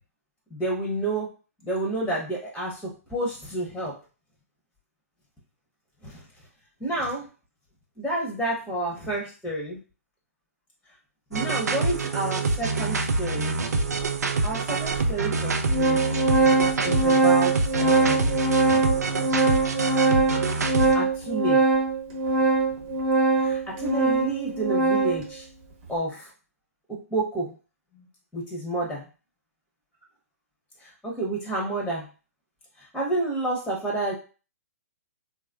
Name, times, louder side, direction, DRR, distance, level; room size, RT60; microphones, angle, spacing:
voice 1, 0.5-1.3 1.6-3.9 6.0-6.2 6.8-7.2 8.0-9.8 11.3-13.6 14.4-16.0 16.8-17.5 17.8-18.4 20.9-21.6 23.3-25.4 25.9-26.3 26.9-27.5 28.0-28.1 28.3-29.0 30.8-32.1 32.9-34.2, right 2 dB, 5° left, -3 dB, 0.8 m, -30 dB
sound 1, 11.3-20.9, right 3 dB, 85° right, 0.4 m, -26 dB
Organ, 14.0-14.1 15.0-15.1 15.4-25.3, right 3 dB, 40° right, 1.0 m, -22 dB
3.3 x 2.4 x 2.3 m, 0.35 s
hypercardioid pair, 130°, 8 cm